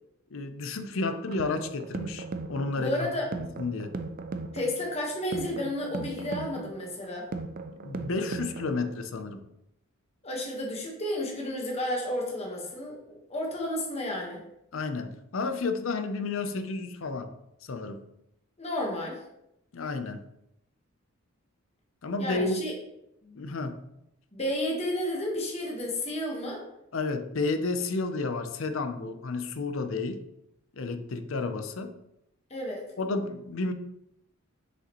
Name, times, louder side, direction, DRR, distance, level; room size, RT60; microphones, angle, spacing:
voice 1, 0.3-3.0 3.6-4.0 7.8-9.4 14.7-17.3 17.6-18.1 19.7-20.3 22.0-22.6 23.4-23.8 26.9-30.2 30.7-32.0 33.0-33.7, left 3 dB, 65° left, 8 dB, 0.6 m, -31 dB
sound 1, 1.1-9.1, right 3 dB, 40° right, 0.4 m, -38 dB
voice 2, 2.8-3.3 4.5-7.3 10.2-14.4 18.6-19.2 22.2-22.7 23.2-23.4 24.3-26.6 32.5-32.9, left 1 dB, 30° left, -1 dB, 1.3 m, -32 dB
6.5 x 4.9 x 3.0 m, 0.81 s
head